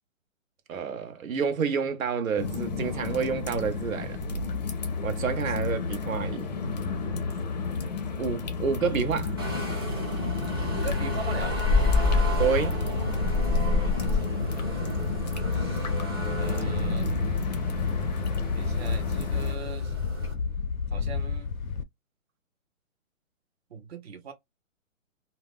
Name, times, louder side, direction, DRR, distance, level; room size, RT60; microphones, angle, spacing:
voice 1, 0.7-4.2 5.0-6.5 8.2-9.4 12.4-12.8, right 6 dB, 90° right, 0.7 m, -29 dB
sound 1, 2.4-19.6, left 3 dB, 35° left, 0.5 m, -32 dB
voice 2, 6.8-7.2 10.6-11.6 13.8-14.8 15.5-15.9 16.3-17.1 18.5-19.9 20.9-21.5 23.7-24.3, right 5 dB, 50° right, 0.8 m, -41 dB
sound 2, 9.4-20.3, left 2 dB, 20° right, 0.4 m, -30 dB
Wind, 10.5-21.8, left 5 dB, 85° left, 0.5 m, -31 dB
2.2 x 2.1 x 3.4 m
hypercardioid pair, 160°, 40 cm